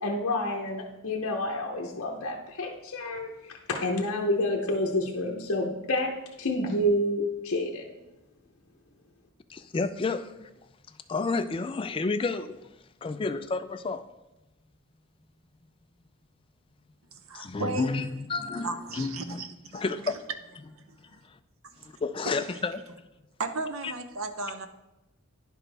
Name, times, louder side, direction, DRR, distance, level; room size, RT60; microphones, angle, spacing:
voice 1, 0.0-7.9, left 1 dB, 60° left, 0.8 m, -29 dB
voice 2, 9.5-10.5 10.9-14.0 17.3-19.4 19.7-20.1 21.0-21.4 21.8-22.8 23.8-23.9, left 3 dB, 25° left, 0.3 m, -31 dB
voice 3, 17.3-17.9 18.5-19.8 20.9-21.2 21.8-22.0 22.2-22.3 23.4-24.7, right 3 dB, 65° right, 0.7 m, -35 dB
9.9 x 6.1 x 3.4 m
head